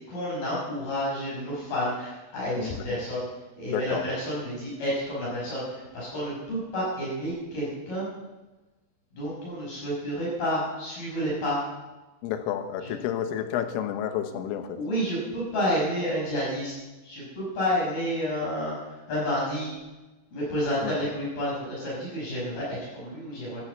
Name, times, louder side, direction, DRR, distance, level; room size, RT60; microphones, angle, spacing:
voice 1, 0.1-3.3 3.6-8.1 9.1-11.6 12.8-12.9 14.7-19.8 20.3-23.6, equal, 50° left, -6 dB, 7.2 m, -30 dB
voice 2, 3.7-4.0 12.2-14.8 20.8-21.0, left 10 dB, 90° left, 8 dB, 3.8 m, -30 dB
13.5 x 13.0 x 8.0 m, 1.1 s
omnidirectional pair, 5.7 m